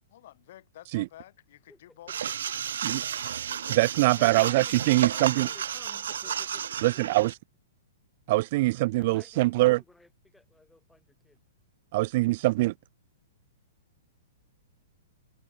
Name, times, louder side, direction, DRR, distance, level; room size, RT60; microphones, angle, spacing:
voice 1, 0.1-2.2 3.2-3.8 4.2-5.6 6.2-6.5, left 13 dB, 50° left, 6.9 m, -50 dB
voice 2, 1.7-2.2 4.2-6.6 6.9-7.2 8.6-11.4, left 2 dB, 5° left, 5.9 m, -55 dB
sound 1, 2.1-7.3, right 9 dB, 75° right, 1.4 m, -32 dB
voice 3, 3.7-5.5 6.8-7.4 8.3-9.8 11.9-12.7, right 20 dB, 40° right, 0.7 m, -23 dB
hypercardioid pair, 165°, 0 cm